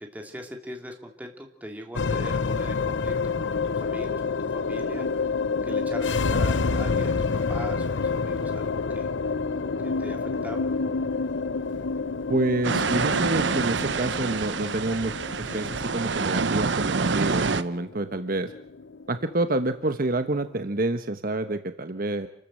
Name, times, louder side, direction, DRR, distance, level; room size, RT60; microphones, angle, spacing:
voice 1, 0.0-4.2 4.5-5.1 5.7-7.1 7.5-9.1 10.0-10.7 15.5-15.6, equal, 10° right, 2 dB, 3.1 m, -40 dB
sound 1, 2.0-20.5, left 4 dB, 85° left, 0.7 m, -29 dB
voice 2, 12.3-18.5 19.1-22.3, right 2 dB, 50° right, 9 dB, 1.1 m, -28 dB
sound 2, 12.6-17.6, right 4 dB, 75° right, 0.9 m, -27 dB
28.5 x 13.5 x 7.7 m, 0.77 s
head